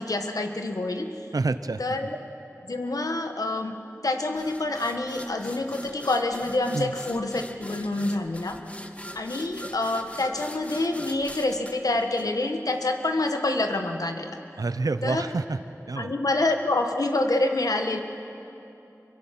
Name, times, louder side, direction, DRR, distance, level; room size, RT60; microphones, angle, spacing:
voice 1, 0.0-1.2 1.8-2.2 2.6-3.8 4.0-8.6 9.1-14.4 15.0-15.2 16.0-18.0, left 2 dB, 85° left, 5 dB, 1.5 m, -27 dB
voice 2, 1.3-1.8 6.7-6.9 14.6-15.6 15.9-16.1, right 3 dB, 85° right, 12 dB, 0.7 m, -27 dB
sound 1, 4.3-12.8, left 1 dB, 20° left, 1.4 m, -43 dB
26.0 x 23.0 x 6.0 m, 2.9 s
wide cardioid pair, 40°, 6 cm